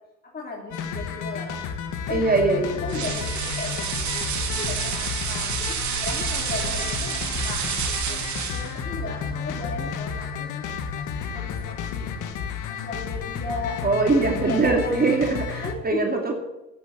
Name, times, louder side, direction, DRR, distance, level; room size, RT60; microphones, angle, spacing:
voice 1, 0.3-1.6 1.9-2.2 2.7-8.2 8.5-11.0 11.3-12.1 12.7-13.8 14.2-15.0 15.6-16.0, left 3 dB, 30° left, -2 dB, 3.3 m, -36 dB
sound 1, 0.7-15.7, left 6 dB, 85° left, 1.7 m, -32 dB
voice 2, 2.1-2.8 13.8-16.4, right 3 dB, 30° right, 3 dB, 2.4 m, -22 dB
sound 2, 2.9-8.8, right 7 dB, 70° right, 2.2 m, -29 dB
9.9 x 9.8 x 8.6 m, 0.97 s
cardioid pair, 90°, 30 cm